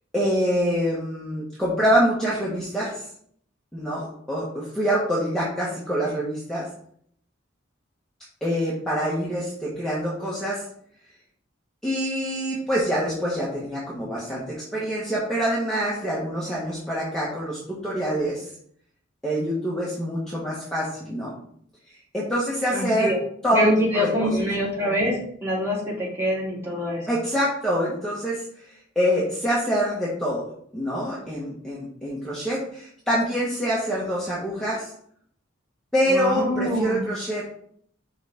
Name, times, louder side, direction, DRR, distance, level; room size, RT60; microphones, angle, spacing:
voice 1, 0.1-3.1 3.7-6.6 8.4-10.6 11.8-18.5 19.2-21.3 22.1-23.1 23.4-23.7 23.9-24.4 27.1-30.4 30.7-34.9 35.9-37.5, equal, 5° left, -7 dB, 1.5 m, -25 dB
voice 2, 22.7-23.2 23.5-25.1 25.4-27.0 36.1-37.0, equal, 15° right, -5 dB, 2.8 m, -24 dB
11.5 x 4.0 x 3.7 m, 0.64 s
head